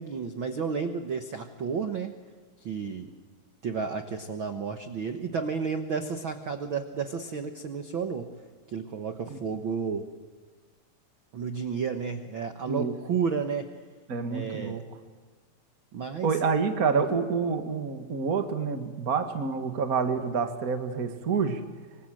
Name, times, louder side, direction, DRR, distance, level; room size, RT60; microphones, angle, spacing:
voice 1, 0.0-2.1 2.6-3.1 3.6-8.3 8.7-10.1 11.3-13.7 14.3-14.8 15.9-16.4, right 6 dB, 65° right, 7 dB, 1.2 m, -32 dB
voice 2, 14.1-14.8 16.2-21.6, right 5 dB, 40° right, 6 dB, 1.3 m, -28 dB
26.0 x 25.5 x 7.8 m, 1.4 s
omnidirectional pair, 4.1 m